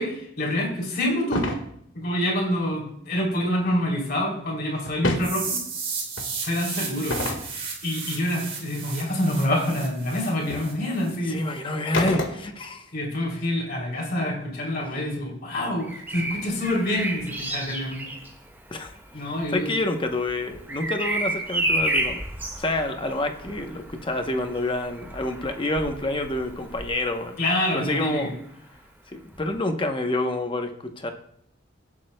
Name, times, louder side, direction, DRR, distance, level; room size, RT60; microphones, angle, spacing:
voice 1, 0.0-1.5 1.9-5.6 6.4-7.2 7.8-11.4 12.9-18.0 19.1-19.7 27.4-28.3, left 1 dB, 50° left, -2 dB, 3.2 m, -26 dB
sound 1, 1.3-1.6 4.9-5.3 6.2-6.3 7.1-7.5 9.8-9.9 10.5-10.7 11.9-12.7, left 2 dB, 80° left, 1.7 m, -27 dB
sound 2, 5.2-11.1, right 5 dB, 30° right, 3.2 m, -34 dB
voice 2, 11.3-12.9 18.7-22.2 22.6-27.4 27.7-28.3 29.1-31.1, left 2 dB, 25° left, 5 dB, 0.8 m, -28 dB
Bird vocalization bird call bird song, 15.8-27.6 29.3-29.5, right 1 dB, 10° right, 1.7 m, -32 dB
17.0 x 8.4 x 2.2 m, 0.70 s
head